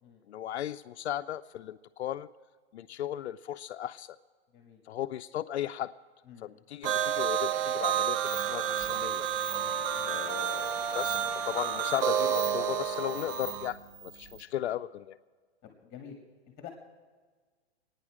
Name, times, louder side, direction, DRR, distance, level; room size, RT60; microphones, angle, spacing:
voice 1, 0.3-2.3 2.7-4.2 4.9-5.9 6.4-9.3 10.1-15.2, left 12 dB, 80° left, 9 dB, 0.6 m, -36 dB
voice 2, 6.3-6.6 9.9-10.2 15.6-16.2 16.6-16.7, left 9 dB, 20° left, 3 dB, 1.7 m, -48 dB
sound 1, 6.8-13.7, right 10 dB, 55° right, 0.8 m, -30 dB
sound 2, 8.2-14.4, right 2 dB, 30° right, 2.1 m, -45 dB
Brass instrument, 9.4-13.3, left 8 dB, 10° right, 3.0 m, -43 dB
26.0 x 9.7 x 4.9 m, 1.5 s
hypercardioid pair, 140°, 32 cm